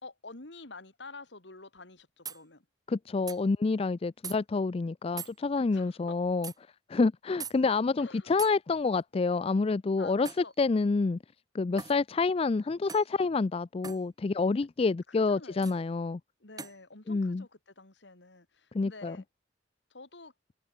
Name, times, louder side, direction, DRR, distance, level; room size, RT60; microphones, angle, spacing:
voice 1, 0.0-2.6 5.6-6.2 8.0-8.3 10.0-10.5 15.3-15.8 16.4-19.2 19.9-20.3, left 3 dB, 75° left, 2.7 m, -49 dB
sound 1, 1.8-1.9 2.2-2.4 3.3-3.4 4.2-4.4 5.2-5.4 6.4-6.6 7.4-7.6 8.4-8.6 10.2-10.5 11.8-12.0 12.9-13.1 13.8-14.0 15.6-15.8 16.6-16.8, right 6 dB, 20° right, 2.4 m, -41 dB
voice 2, 2.9-6.5 6.9-10.3 10.6-11.2 11.5-16.2 17.1-17.4 18.7-19.2, left 4 dB, 30° left, 0.4 m, -28 dB
head